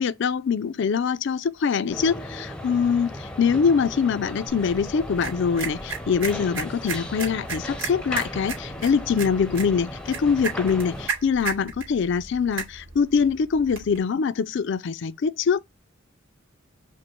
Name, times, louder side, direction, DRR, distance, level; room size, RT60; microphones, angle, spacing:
voice 1, 0.0-15.6, left 6 dB, 60° left, 0.4 m, -24 dB
sound 1, 1.9-11.1, left 1 dB, 5° left, 0.6 m, -36 dB
sound 2, 4.5-14.0, right 5 dB, 65° right, 2.2 m, -36 dB
5.2 x 2.1 x 4.3 m
head